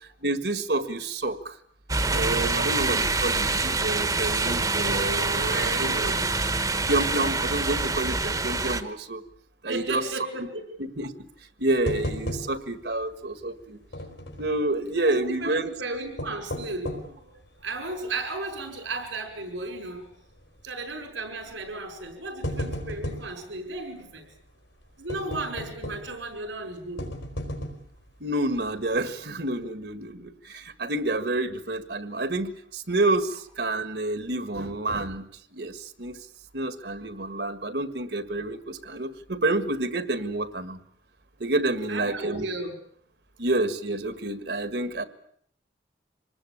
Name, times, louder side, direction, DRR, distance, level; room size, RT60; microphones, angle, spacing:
voice 1, 0.2-1.6 2.1-6.1 6.9-9.2 9.6-10.1 10.8-11.3 11.6-13.8 14.4-15.7 28.2-35.2 35.5-36.2 36.5-40.8 41.4-42.5 43.4-45.0, right 2 dB, 60° right, 12 dB, 1.7 m, -28 dB
sound 1, 1.9-8.8, right 3 dB, 20° right, 1.2 m, -26 dB
voice 2, 5.5-6.2 9.7-10.7 15.0-20.1 20.6-24.3 25.0-27.1 41.9-42.7, right 2 dB, 90° right, 6 dB, 5.4 m, -35 dB
sound 2, 11.9-12.8 13.1-13.2 13.9-14.6 16.0-17.2 17.8-17.9 18.5-18.8 19.0-19.1 20.3-20.6 21.5-21.6 22.1-23.4 25.1-26.2 27.0-28.0 28.5-28.6 29.0-29.1, equal, 75° left, 4.6 m, -34 dB
25.5 x 19.5 x 8.6 m, 0.67 s
head